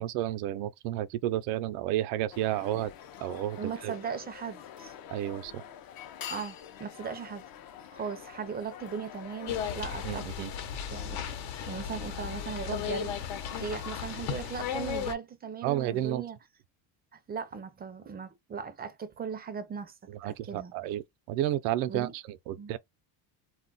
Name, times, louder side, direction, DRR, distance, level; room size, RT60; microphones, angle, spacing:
voice 1, 0.0-2.9 3.2-3.9 5.1-5.6 10.0-10.5 15.6-16.2 20.1-21.0 21.3-22.8, right 13 dB, 85° right, 0.6 m, -31 dB
sound 1, 2.3-10.2, left 9 dB, 45° left, 0.6 m, -46 dB
voice 2, 3.6-4.9 6.3-7.4 7.9-10.5 10.9-11.4 11.7-16.4 17.1-20.0 20.2-20.7 21.9-22.1 22.6-22.8, right 6 dB, 20° right, 0.4 m, -38 dB
sound 2, 9.5-15.1, left 8 dB, 70° left, 0.9 m, -35 dB
2.3 x 2.0 x 3.8 m
cardioid pair, 115°, 49 cm